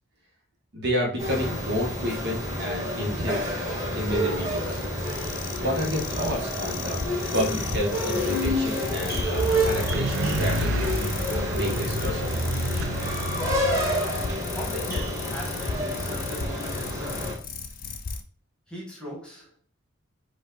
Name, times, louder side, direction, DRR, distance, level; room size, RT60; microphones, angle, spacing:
voice 1, 0.7-3.5 3.9-4.8 5.6-7.0 7.3-11.0 11.6-12.2, equal, 55° right, 0 dB, 1.3 m, -30 dB
sound 1, 1.2-17.3, equal, 15° right, 1.8 m, -29 dB
sound 2, 2.8-18.2, left 4 dB, 45° left, 0.5 m, -36 dB
sound 3, 9.3-13.9, right 1 dB, 75° right, 0.6 m, -30 dB
voice 2, 14.3-17.4 18.7-19.5, equal, 5° left, -3 dB, 1.4 m, -39 dB
4.9 x 2.5 x 4.0 m, 0.43 s
head